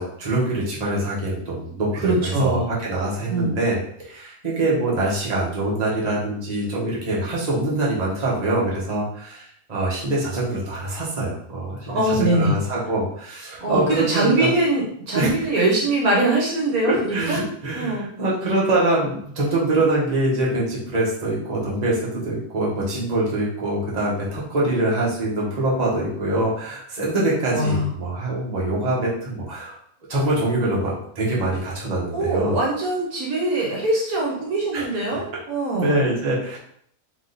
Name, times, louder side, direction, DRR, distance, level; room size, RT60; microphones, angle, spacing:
voice 1, 0.0-14.5 15.1-15.3 16.9-29.8 30.1-32.6 34.7-34.9 35.1-35.2 35.7-36.6, right 2 dB, 30° right, -5 dB, 1.1 m, -24 dB
voice 2, 2.0-2.7 3.3-3.5 11.9-12.5 13.6-17.4 17.7-18.1 27.5-27.9 32.1-36.1, right 2 dB, 65° right, -3 dB, 1.4 m, -22 dB
3.7 x 3.0 x 3.9 m, 0.64 s
omnidirectional pair, 1.7 m